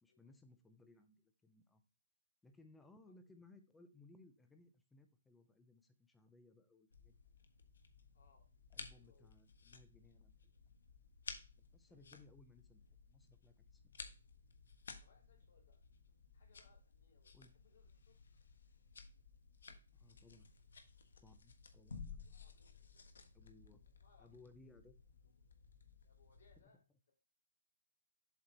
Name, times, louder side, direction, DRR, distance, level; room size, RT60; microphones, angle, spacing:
voice 1, 0.0-1.8 2.4-7.1 8.7-10.5 11.6-14.0 17.3-17.5 19.9-20.5 21.2-22.2 23.3-23.8 24.2-25.0 26.6-26.7, left 2 dB, 5° left, 7 dB, 0.5 m, -64 dB
sound 1, 6.9-26.6, left 5 dB, 75° left, 1.4 m, -56 dB
voice 2, 8.1-8.5 8.9-9.3 11.9-12.1 15.0-15.8 16.3-18.2 22.2-23.1 24.0-24.5 26.0-26.8, left 4 dB, 50° left, 1 dB, 3.2 m, -72 dB
7.6 x 4.3 x 4.1 m, 0.33 s
hypercardioid pair, 180°, 0 cm